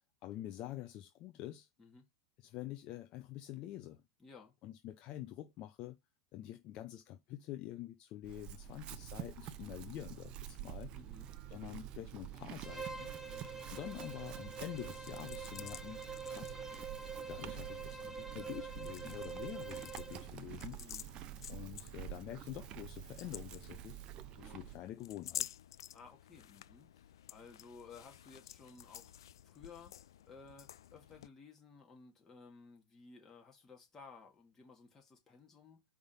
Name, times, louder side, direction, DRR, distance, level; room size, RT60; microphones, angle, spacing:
voice 1, 0.2-1.7 2.4-4.0 4.6-6.0 6.3-10.9 11.5-13.2 13.7-16.0 16.3-16.6 17.3-20.8 21.5-24.0 24.4-25.5, left 13 dB, 40° left, 0.7 m, -47 dB
voice 2, 4.2-4.5 8.6-8.8 10.9-11.3 13.3-13.7 20.7-21.1 24.4-24.6 25.7-35.8, left 4 dB, 15° left, 2.4 m, -57 dB
Chewing mastication / Livestock farm animals working animals, 8.2-24.8, right 12 dB, 35° right, 0.7 m, -48 dB
Bowed string instrument, 12.6-20.3, right 4 dB, 10° right, 1.0 m, -46 dB
sound 1, 13.6-31.3, left 11 dB, 90° left, 0.4 m, -52 dB
5.1 x 3.6 x 5.7 m
supercardioid pair, 135°, 2 cm